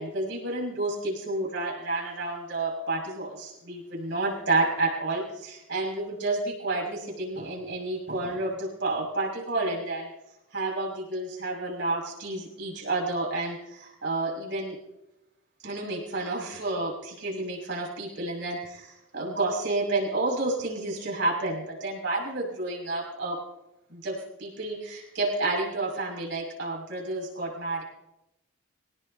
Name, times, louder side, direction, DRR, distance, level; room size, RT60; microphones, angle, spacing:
voice 1, 0.0-10.1 10.5-14.8 15.6-23.4 23.9-27.8, right 2 dB, 55° right, -2 dB, 6.3 m, -30 dB
26.0 x 18.0 x 2.8 m, 0.90 s
head